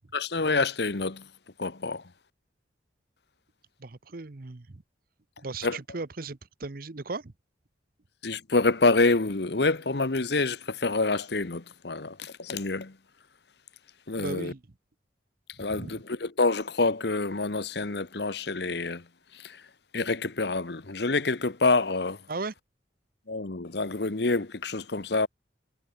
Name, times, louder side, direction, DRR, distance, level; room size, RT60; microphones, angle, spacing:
voice 1, 0.1-1.2 1.6-2.0 5.6-5.8 8.2-12.9 14.1-14.5 15.6-19.0 19.3-19.6 19.9-22.2 23.3-25.3, left 3 dB, 60° left, 1.1 m, -27 dB
voice 2, 3.8-4.8 5.4-7.3 14.2-14.6 15.6-16.0 22.3-22.5, right 3 dB, 50° right, 0.8 m, -37 dB
head